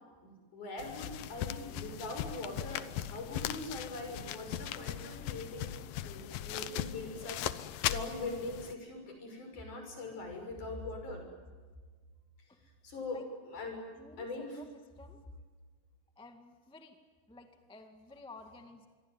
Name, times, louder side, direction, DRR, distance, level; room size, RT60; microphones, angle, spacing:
voice 1, 0.2-5.7 6.0-11.2 12.8-13.8 14.2-14.6, left 2 dB, 60° left, 3 dB, 7.6 m, -42 dB
sound 1, 0.8-8.7, left 12 dB, 80° left, 2.6 m, -39 dB
voice 2, 13.9-14.3 14.6-14.7 15.0-15.2 16.2-17.0 17.3-18.9, left 2 dB, 5° left, 5 dB, 0.9 m, -52 dB
26.0 x 23.0 x 9.4 m, 1.4 s
omnidirectional pair, 4.0 m